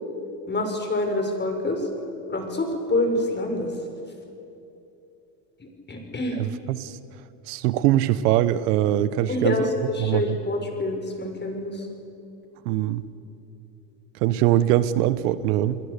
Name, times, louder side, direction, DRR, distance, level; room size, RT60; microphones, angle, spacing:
voice 1, 0.5-1.8 2.3-3.7 5.9-6.4 9.3-11.9, left 2 dB, 20° left, 4 dB, 6.2 m, -26 dB
voice 2, 6.4-7.0 7.5-9.7 10.0-10.4 12.6-13.0 14.2-15.8, right 13 dB, 80° right, 15 dB, 1.2 m, -22 dB
30.0 x 21.5 x 6.9 m, 2.9 s
supercardioid pair, 95°, 47 cm